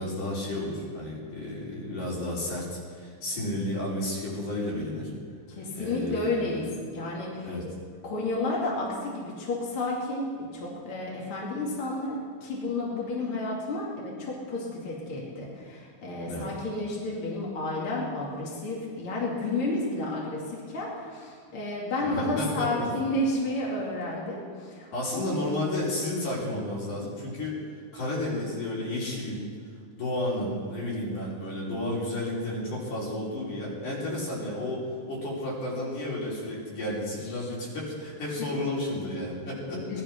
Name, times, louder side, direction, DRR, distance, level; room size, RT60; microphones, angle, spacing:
voice 1, 0.0-5.1 5.7-6.6 7.4-7.6 16.3-16.5 22.1-22.9 24.9-27.6 27.9-29.5 30.0-34.8 35.1-40.0, left 1 dB, 80° left, -6 dB, 5.4 m, -32 dB
voice 2, 5.5-6.7 6.9-7.5 8.0-25.2 38.4-38.5 39.7-40.0, left 2 dB, 45° left, -4 dB, 3.2 m, -31 dB
18.0 x 11.5 x 6.0 m, 2.1 s
omnidirectional pair, 3.6 m